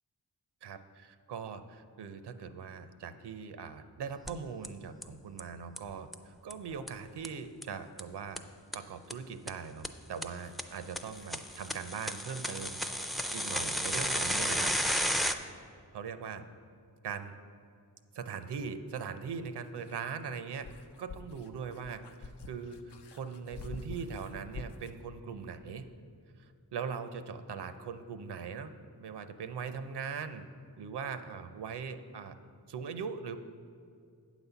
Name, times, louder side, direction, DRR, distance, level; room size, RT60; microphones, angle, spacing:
voice 1, 0.6-8.4 8.7-12.8 13.1-14.7 15.9-16.4 17.0-17.3 18.1-20.7 21.0-25.9 26.4-28.7 29.0-30.4 30.8-32.3 32.7-33.4, right 6 dB, 75° right, 10 dB, 0.6 m, -41 dB
sound 1, 4.3-4.4 4.6-4.7 5.0-5.1 5.4-5.5 5.8-5.9 6.1-6.2 6.5-6.6 6.9-7.0 7.2-7.3 7.6-7.7 8.0-8.1 8.4-8.5 8.7-8.8 9.1-9.2 9.5-9.6 9.8-9.9 10.2-10.3 10.6-10.7 11.0-15.3, equal, ahead, 0.3 m, -32 dB
sound 2, 10.3-14.8 17.1-17.2 19.2-25.0, left 4 dB, 80° left, 0.6 m, -50 dB
8.9 x 4.1 x 6.9 m, 2.4 s
wide cardioid pair, 75°, 40 cm